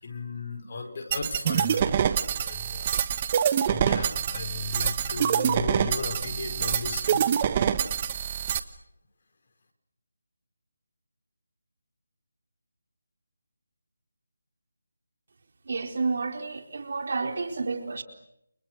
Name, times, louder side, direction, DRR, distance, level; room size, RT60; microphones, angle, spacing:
voice 1, 0.0-2.0 2.4-3.4 3.7-7.4 8.2-8.8, left 3 dB, 40° left, 4 dB, 5.5 m, -36 dB
sound 1, 1.1-8.6, right 8 dB, 25° right, 1.4 m, -26 dB
voice 2, 15.7-18.0, right 4 dB, 50° right, 5 dB, 4.4 m, -30 dB
30.0 x 29.0 x 6.6 m, 0.76 s
figure-of-eight pair, 170°, 0 cm